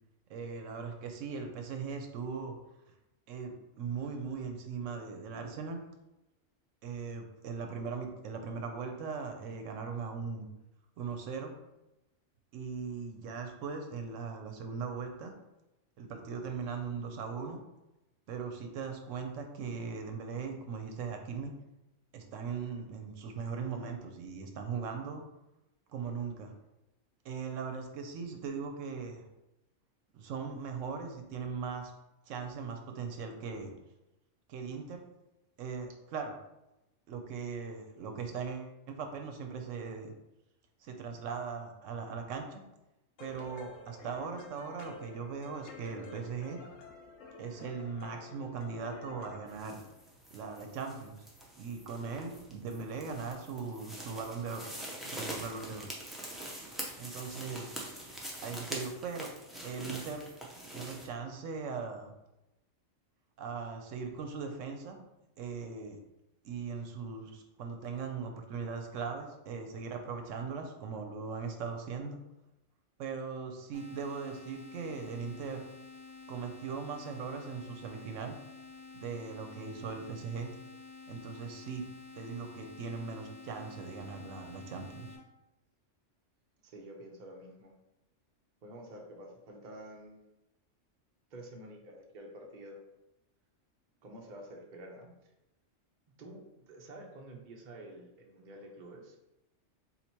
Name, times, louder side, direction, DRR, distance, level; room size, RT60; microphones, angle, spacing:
voice 1, 0.3-2.6 3.3-5.8 6.8-10.5 11.0-11.5 12.5-15.3 16.0-17.6 18.3-21.5 22.1-25.2 25.9-26.5 27.2-29.3 30.1-31.9 32.3-33.7 34.5-35.0 35.6-36.3 37.1-40.1 40.8-42.6 43.2-46.6 47.4-49.8 50.3-51.2 51.6-54.7 55.0-55.9 57.0-57.7 58.4-59.3 59.6-60.2 60.7-62.1 63.4-65.0 65.4-66.0 66.4-72.2 73.0-75.6 76.3-78.3 78.9-80.5 81.1-81.9 82.2-85.1, right 5 dB, 80° right, 4 dB, 1.0 m, -39 dB
sound 1, 43.2-49.6, left 2 dB, 85° left, 1.0 m, -50 dB
sound 2, 49.5-61.1, right 1 dB, ahead, 0.4 m, -44 dB
sound 3, 73.7-85.2, left 4 dB, 55° left, 1.9 m, -50 dB
voice 2, 86.6-87.7 88.6-90.2 91.3-92.8 94.0-95.1 96.2-99.2, right 1 dB, 45° right, 1 dB, 0.8 m, -49 dB
3.9 x 2.9 x 4.3 m, 0.94 s
omnidirectional pair, 1.3 m